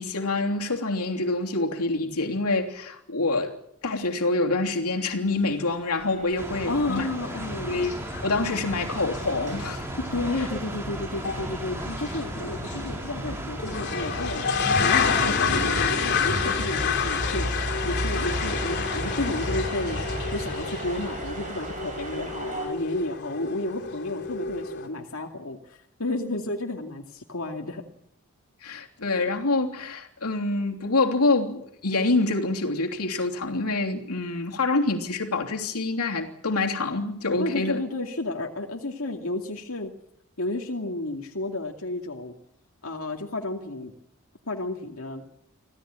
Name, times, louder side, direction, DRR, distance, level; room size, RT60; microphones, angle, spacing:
voice 1, 0.0-3.6 3.8-7.1 7.6-7.9 8.2-10.1 15.3-15.4 22.1-22.2 26.2-26.4 28.6-37.8, left 2 dB, 90° left, 3.2 m, -26 dB
sound 1, 6.0-22.7, right 3 dB, 35° right, 5.2 m, -40 dB
sound 2, 6.4-22.6, right 1 dB, 10° right, 5.0 m, -38 dB
voice 2, 6.7-7.7 10.1-14.5 14.8-17.5 17.8-20.0 20.3-27.8 37.4-39.9 40.4-42.4 42.8-43.9 44.5-45.2, left 2 dB, 70° left, 2.4 m, -32 dB
sound 3, 7.3-7.4 7.7-8.2 8.5-8.6 9.1-9.2 9.5-9.6 11.2-11.4 12.0-12.2 12.6-12.8 13.6-24.9, left 5 dB, 50° left, 4.1 m, -28 dB
26.5 x 16.5 x 8.9 m
head